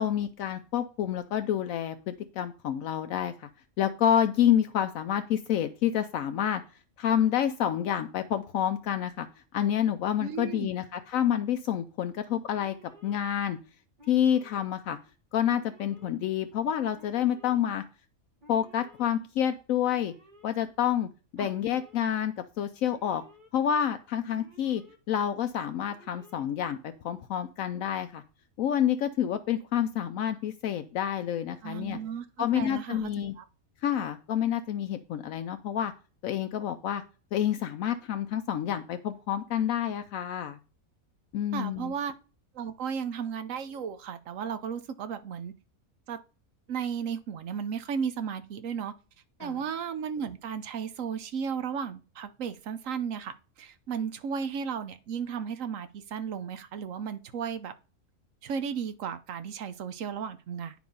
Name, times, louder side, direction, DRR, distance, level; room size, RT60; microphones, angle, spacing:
voice 1, 0.0-3.5 3.8-6.6 7.0-9.3 9.5-12.8 13.0-13.6 14.1-15.0 15.3-17.8 18.5-20.1 20.4-23.2 23.5-24.8 25.1-28.2 28.6-32.0 32.4-33.3 33.8-35.9 36.2-37.0 37.3-40.6 41.3-41.9 49.4-49.6, left 10 dB, 75° left, 1.0 m, -28 dB
voice 2, 10.2-10.7 21.4-21.5 31.6-32.3 32.5-33.1 33.4-33.5 41.5-42.1 42.5-45.5 46.1-46.2 46.7-48.9 49.4-53.3 53.6-57.7 58.4-60.7, right 7 dB, 70° right, 1.1 m, -34 dB
Alarm, 12.5-13.2 14.0-14.6 15.4-16.1 16.9-17.6 18.4-19.1 19.9-20.5 21.3-22.0 22.8-23.5 24.3-25.0 25.8-26.4, left 1 dB, 35° right, 1.8 m, -55 dB
9.5 x 4.7 x 5.3 m
omnidirectional pair, 1.5 m